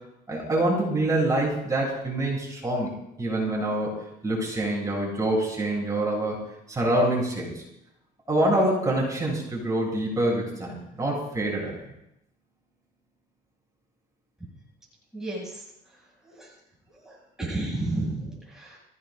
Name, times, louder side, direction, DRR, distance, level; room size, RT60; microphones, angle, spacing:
voice 1, 0.3-2.9 3.2-3.9 4.2-6.4 6.7-7.5 8.3-11.7, right 1 dB, 20° right, -3 dB, 7.9 m, -25 dB
voice 2, 15.1-15.6 16.3-16.5 17.0-18.8, right 2 dB, 5° right, -5 dB, 6.9 m, -32 dB
24.5 x 17.0 x 2.7 m, 0.80 s
cardioid pair, 110°, 17 cm